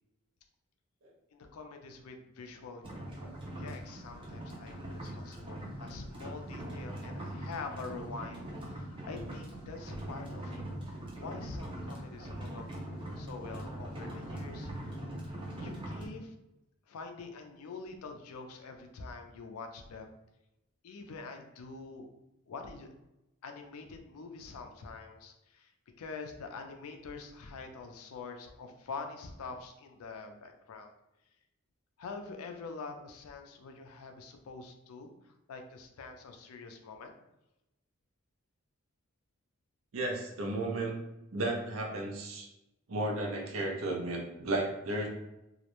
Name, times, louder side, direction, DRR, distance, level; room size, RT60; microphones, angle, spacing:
voice 1, 1.3-2.9 3.5-10.6 11.2-12.6 13.2-15.0 15.6-16.3 16.9-20.1 20.8-22.1 22.5-22.9 23.4-25.7 26.0-30.9 32.0-37.1, left 4 dB, 90° left, 5 dB, 0.4 m, -45 dB
sound 1, 2.8-16.1, right 1 dB, 25° right, 0.4 m, -42 dB
voice 2, 39.9-40.9 41.3-42.5 42.9-45.1, right 2 dB, 70° right, 1 dB, 0.6 m, -33 dB
2.4 x 2.0 x 2.9 m, 0.92 s
head